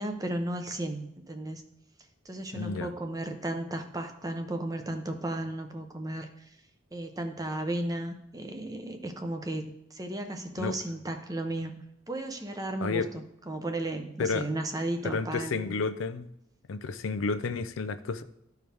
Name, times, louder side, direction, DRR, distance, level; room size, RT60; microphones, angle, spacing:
voice 1, 0.0-1.6 2.2-6.3 6.9-11.7 12.1-15.7, right 1 dB, 20° right, 6 dB, 0.7 m, -34 dB
voice 2, 2.5-2.9 10.6-10.8 12.8-13.1 14.2-14.5 15.0-16.3 16.7-18.2, left 4 dB, 80° left, 12 dB, 0.5 m, -31 dB
13.5 x 4.7 x 3.4 m, 0.78 s
head